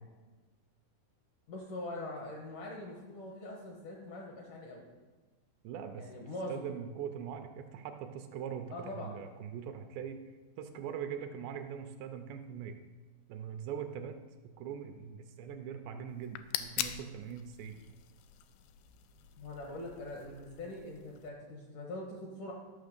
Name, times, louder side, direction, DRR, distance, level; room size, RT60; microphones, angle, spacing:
voice 1, 1.5-4.9 6.0-6.7 8.7-9.2 19.4-22.5, left 2 dB, 70° left, 0 dB, 2.1 m, -43 dB
voice 2, 5.6-6.1 6.5-10.2 10.6-12.8 13.3-14.2 14.6-17.8, right 8 dB, 80° right, 6 dB, 2.6 m, -42 dB
sound 1, 16.1-21.3, left 11 dB, 90° left, 2.3 m, -43 dB
13.0 x 5.8 x 6.6 m, 1.3 s
omnidirectional pair, 5.3 m